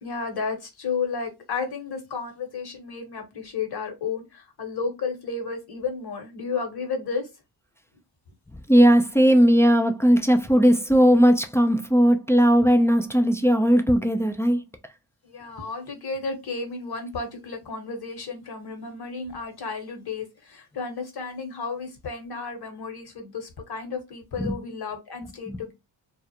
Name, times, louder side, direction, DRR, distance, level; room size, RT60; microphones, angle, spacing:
voice 1, 0.0-7.3 15.2-25.7, left 4 dB, 50° left, 1.2 m, -32 dB
voice 2, 8.7-14.6 24.4-24.5 25.5-25.6, equal, 5° left, 0.4 m, -18 dB
2.4 x 2.0 x 2.8 m
supercardioid pair, 50°, 49 cm